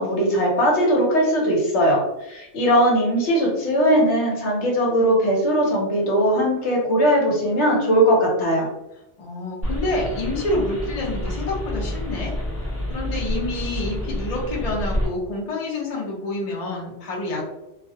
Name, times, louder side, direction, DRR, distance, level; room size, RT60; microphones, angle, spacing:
voice 1, 0.0-2.0 2.3-8.7, equal, 70° left, -2 dB, 1.0 m, -19 dB
voice 2, 9.2-12.3 12.6-17.4, left 2 dB, 40° left, -3 dB, 0.6 m, -28 dB
sound 1, 9.6-15.1, left 1 dB, 15° right, 0.7 m, -28 dB
2.3 x 2.1 x 2.6 m, 0.89 s
omnidirectional pair, 1.2 m